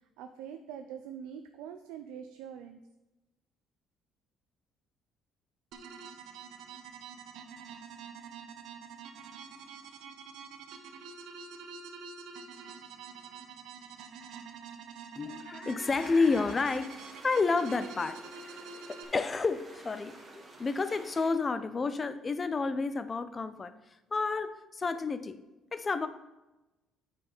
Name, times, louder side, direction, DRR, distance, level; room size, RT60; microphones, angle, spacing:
voice 1, 0.0-2.8, right 8 dB, 85° right, 7 dB, 0.5 m, -44 dB
sound 1, 5.7-19.0, right 5 dB, 70° right, 0.9 m, -47 dB
voice 2, 15.2-18.2 18.9-23.7 24.1-25.4 25.7-26.1, left 4 dB, 30° left, 12 dB, 0.6 m, -30 dB
sound 2, 15.8-21.3, right 2 dB, 30° right, 1.7 m, -51 dB
8.7 x 4.3 x 5.0 m, 1.0 s
supercardioid pair, 85°, 0 cm